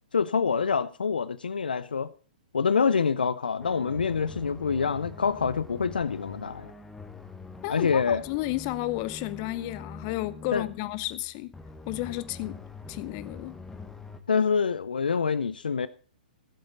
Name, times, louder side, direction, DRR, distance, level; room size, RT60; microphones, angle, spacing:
voice 1, 0.1-2.1 2.5-6.7 7.7-8.2 10.5-10.6 14.3-15.9, left 6 dB, 75° left, 0.5 m, -26 dB
sound 1, 3.6-14.2, left 3 dB, 10° left, 1.2 m, -44 dB
voice 2, 7.6-11.5 11.9-12.6 12.9-13.6, left 18 dB, 40° left, 0.7 m, -32 dB
16.0 x 7.9 x 4.0 m
figure-of-eight pair, 115°, 5 cm